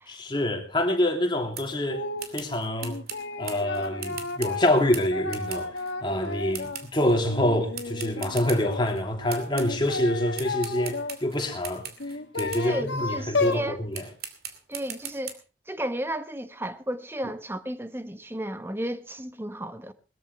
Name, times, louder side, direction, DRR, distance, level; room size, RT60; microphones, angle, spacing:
voice 1, 0.1-2.0 2.3-3.0 3.4-14.0, left 1 dB, 25° left, 3.1 m, -26 dB
sound 1, 1.5-1.8 2.2-5.9 6.5-7.2 7.7-9.0 9.3-10.0 10.3-12.7 13.4-13.6 13.9-15.3, right 8 dB, 55° right, 2.6 m, -40 dB
sound 2, 1.9-2.3 2.8-6.9 7.3-8.8 9.5-11.2 12.0-13.7, left 3 dB, 85° left, 1.9 m, -32 dB
voice 2, 12.6-13.8 14.7-15.4 15.7-19.9, right 1 dB, 15° right, 1.2 m, -33 dB
21.5 x 14.0 x 3.3 m
head